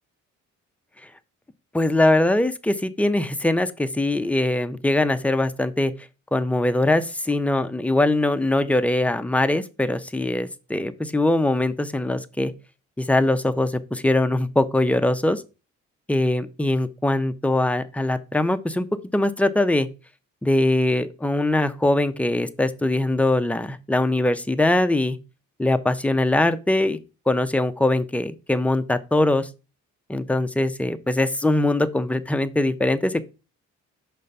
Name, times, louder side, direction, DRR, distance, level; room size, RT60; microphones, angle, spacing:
voice 1, 1.7-5.9 6.3-12.5 13.0-15.4 16.1-18.9 19.1-19.9 20.4-25.2 25.6-27.0 27.3-29.5 30.1-33.2, left 1 dB, 5° left, 0.5 m, -22 dB
5.4 x 3.4 x 5.4 m
cardioid pair, 90°, 30 cm